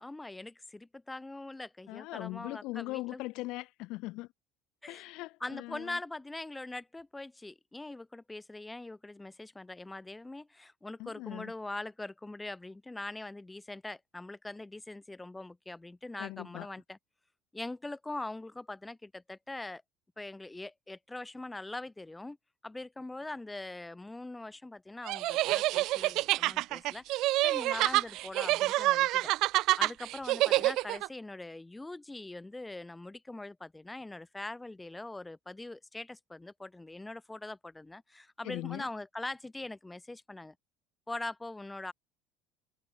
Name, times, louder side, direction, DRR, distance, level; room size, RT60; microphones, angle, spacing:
voice 1, 0.0-3.2 4.8-5.0 5.4-17.0 17.5-19.8 20.2-22.4 22.6-29.3 29.8-40.5 41.1-41.9, left 2 dB, 10° left, 6.2 m, -42 dB
voice 2, 1.9-4.3 4.9-6.0 11.0-11.5 16.2-16.7 38.4-38.9, left 20 dB, 70° left, 2.3 m, -40 dB
sound 1, 25.1-31.1, right 18 dB, 65° right, 0.6 m, -27 dB
supercardioid pair, 110°, 0 cm